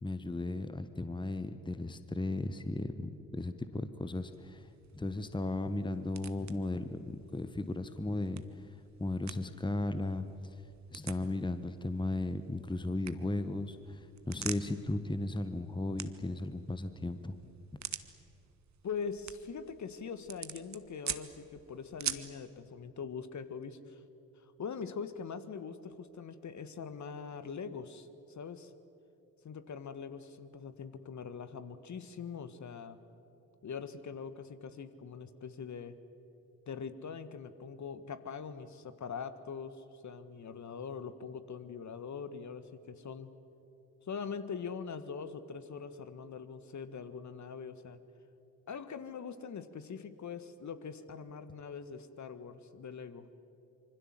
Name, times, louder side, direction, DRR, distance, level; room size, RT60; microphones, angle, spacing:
voice 1, 0.0-4.7 4.9-8.4 9.0-10.2 10.9-17.4, left 2 dB, 10° left, 11 dB, 1.4 m, -36 dB
sound 1, 4.2-22.4, right 8 dB, 40° right, 1.4 m, -47 dB
voice 2, 18.8-24.0 24.4-28.7 29.4-33.0 33.6-36.0 36.6-43.3 44.0-48.0 48.7-53.3, left 6 dB, 40° left, 12 dB, 1.7 m, -43 dB
26.0 x 24.5 x 7.7 m, 2.7 s
figure-of-eight pair, 40°, 42 cm